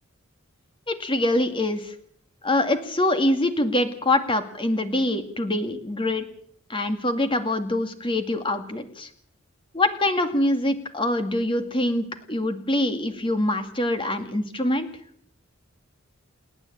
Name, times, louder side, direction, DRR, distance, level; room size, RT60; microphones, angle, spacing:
voice 1, 0.9-1.9 2.4-6.2 6.7-9.1 9.7-14.9, left 1 dB, 25° left, 8 dB, 2.2 m, -24 dB
29.0 x 9.8 x 9.0 m, 0.64 s
head